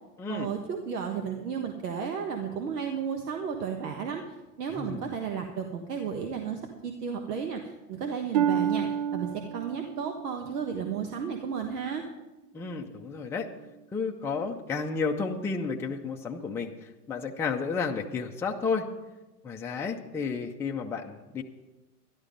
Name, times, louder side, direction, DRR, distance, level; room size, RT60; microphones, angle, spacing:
voice 1, 0.3-12.1, right 6 dB, 85° right, 4 dB, 1.5 m, -33 dB
Harp, 8.3-12.1 12.6-13.0 13.7-13.8, right 9 dB, 45° right, 0.5 m, -31 dB
voice 2, 12.5-13.5 13.9-16.7 17.1-18.8 19.4-21.4, left 5 dB, 5° left, 1 dB, 0.5 m, -32 dB
12.5 x 11.5 x 5.2 m, 1.1 s
hypercardioid pair, 125°, 46 cm